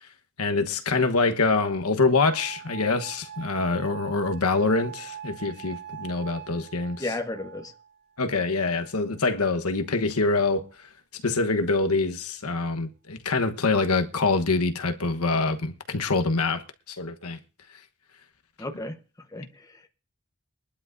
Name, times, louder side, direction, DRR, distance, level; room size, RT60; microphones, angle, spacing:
voice 1, 0.4-7.0 8.2-10.6 11.2-17.4, left 3 dB, 80° left, 1.2 m, -25 dB
sound 1, 2.2-9.2 10.0-10.6, right 9 dB, 60° right, 5.3 m, -43 dB
voice 2, 7.0-7.7 18.6-19.0 19.3-19.9, left 2 dB, 15° left, 1.1 m, -33 dB
22.5 x 12.0 x 2.6 m
head